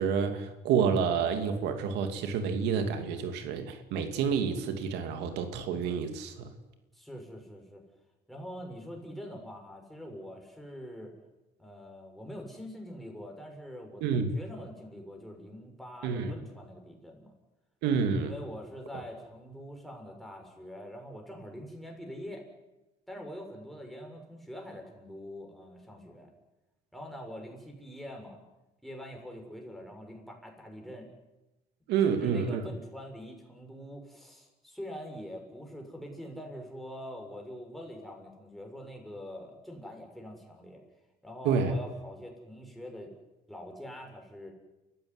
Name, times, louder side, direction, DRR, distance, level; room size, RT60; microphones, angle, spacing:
voice 1, 0.0-6.5 14.0-14.3 16.0-16.3 17.8-18.3 31.9-32.6 41.4-41.8, right 6 dB, 90° right, 7 dB, 2.7 m, -29 dB
voice 2, 6.9-7.8 8.3-11.1 11.6-17.3 18.2-22.4 23.1-26.3 26.9-28.4 28.8-31.1 32.1-40.8 41.2-43.1 43.5-44.5, equal, ahead, 1 dB, 7.0 m, -44 dB
30.0 x 15.5 x 9.9 m, 1.0 s
cardioid pair, 110°, 17 cm